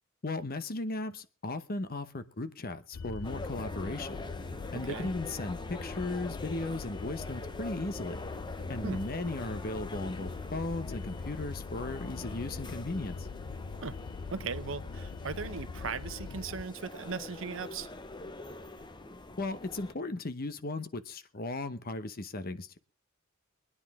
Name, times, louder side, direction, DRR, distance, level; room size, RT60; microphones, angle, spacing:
voice 1, 0.2-4.3 4.7-8.2 8.7-13.3 19.4-22.8, left 2 dB, 45° left, 0.9 m, -36 dB
sound 1, 2.9-16.6, left 4 dB, 75° left, 0.6 m, -42 dB
sound 2, 3.2-20.0, left 2 dB, 20° left, 0.9 m, -44 dB
voice 2, 4.7-5.1 8.8-9.0 13.8-14.0 14.3-17.9, right 5 dB, 70° right, 0.8 m, -38 dB
23.5 x 9.9 x 3.6 m
head